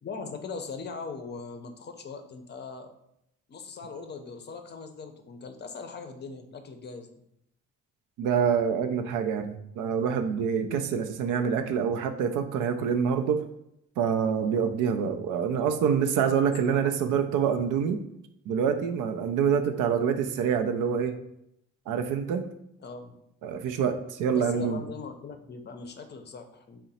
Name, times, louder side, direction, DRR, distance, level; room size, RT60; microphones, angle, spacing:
voice 1, 0.0-2.9 3.5-7.1 16.4-16.9 22.8-23.1 24.3-26.8, left 4 dB, 35° left, 6 dB, 0.5 m, -40 dB
voice 2, 8.2-13.4 14.0-18.0 18.5-21.1 21.9-22.5 23.4-24.8, right 7 dB, 85° right, 7 dB, 0.5 m, -26 dB
3.7 x 2.1 x 4.1 m, 0.78 s
cardioid pair, 90°, 30 cm